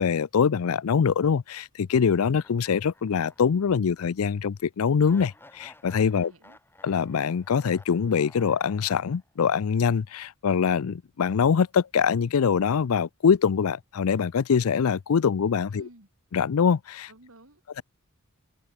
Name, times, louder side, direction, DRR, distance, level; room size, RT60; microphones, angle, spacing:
voice 1, 0.0-6.3 6.8-15.9 16.3-17.1, left 6 dB, 75° left, 0.5 m, -24 dB
sound 1, 2.4-3.7 4.1-4.2 5.0-9.3, left 2 dB, 10° left, 4.3 m, -54 dB
voice 2, 6.1-6.6 15.7-16.1 17.1-17.8, right 1 dB, 70° right, 3.6 m, -52 dB
head